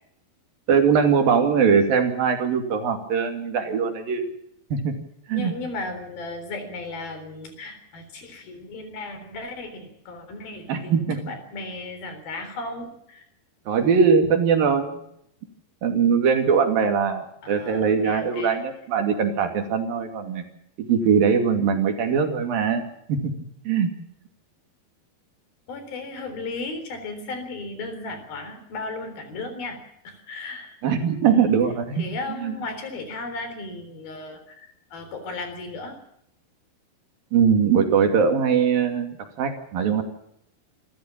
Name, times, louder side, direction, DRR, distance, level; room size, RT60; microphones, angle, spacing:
voice 1, 0.7-4.3 4.7-4.9 5.3-5.5 10.7-11.2 13.7-14.9 15.8-20.4 20.8-22.8 23.1-23.2 23.7-23.9 30.8-32.0 32.4-32.5 37.3-40.0, right 6 dB, 65° right, 5 dB, 4.1 m, -21 dB
voice 2, 5.3-13.3 17.4-18.6 25.7-29.8 30.0-30.8 31.3-31.5 32.0-36.0, left 3 dB, 70° left, 8 dB, 5.6 m, -35 dB
27.0 x 14.0 x 7.4 m, 0.76 s
omnidirectional pair, 4.5 m